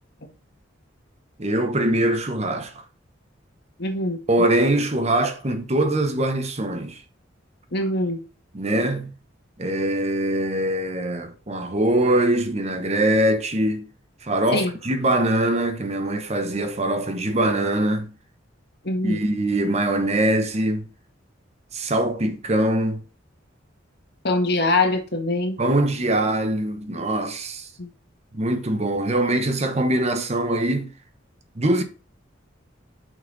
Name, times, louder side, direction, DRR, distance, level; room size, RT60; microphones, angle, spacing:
voice 1, 1.4-2.7 4.3-7.0 8.5-9.1 9.6-13.9 14.2-18.1 19.0-20.9 21.7-23.0 25.6-27.7 28.3-30.9 31.6-31.8, right 1 dB, 35° right, 1.1 m, -22 dB
voice 2, 3.8-4.2 7.7-8.2 14.5-14.8 18.8-19.2 24.2-25.6 27.8-27.9, left 2 dB, 60° left, 1.7 m, -23 dB
6.3 x 5.7 x 4.0 m
head